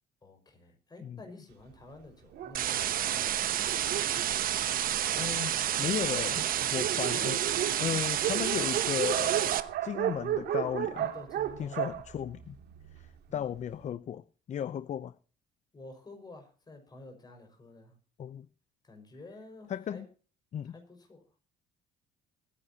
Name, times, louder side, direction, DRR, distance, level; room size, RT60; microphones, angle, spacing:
voice 1, 0.2-4.0 10.9-11.9 13.3-13.5 15.7-18.0 18.8-20.1 20.6-21.2, left 2 dB, 25° left, 5.6 m, -50 dB
Dog, 2.3-5.3 6.0-6.1 6.4-6.5 6.7-13.1, right 11 dB, 75° right, 2.7 m, -34 dB
sound 1, 2.5-9.6, right 11 dB, 60° right, 1.0 m, -30 dB
voice 2, 5.1-7.4 7.8-11.1 11.6-12.6 12.9-14.2 14.5-15.1 18.2-18.5 19.7-20.1 20.5-20.8, left 9 dB, 45° left, 0.6 m, -35 dB
23.5 x 10.0 x 2.9 m
cardioid pair, 110°, 17 cm